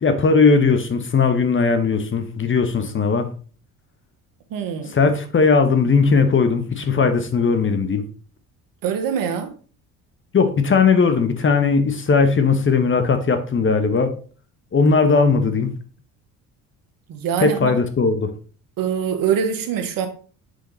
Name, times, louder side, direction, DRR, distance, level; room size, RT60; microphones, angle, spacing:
voice 1, 0.0-3.3 4.9-8.0 10.3-14.1 14.7-15.7 17.4-18.3, left 4 dB, 35° left, 1.2 m, -18 dB
voice 2, 4.5-4.9 8.8-9.5 17.1-17.8 18.8-20.1, right 7 dB, 65° right, 1.5 m, -23 dB
6.6 x 5.0 x 4.1 m
supercardioid pair, 75°, 37 cm